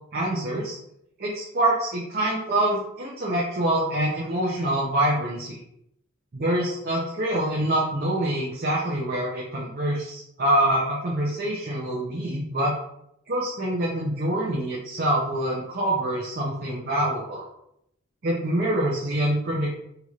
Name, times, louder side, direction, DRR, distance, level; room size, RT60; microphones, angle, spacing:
voice 1, 0.1-0.8 1.2-5.6 6.3-12.7 13.3-17.4 18.2-19.8, right 1 dB, 45° right, -4 dB, 0.5 m, -25 dB
3.0 x 2.8 x 2.4 m, 0.76 s
head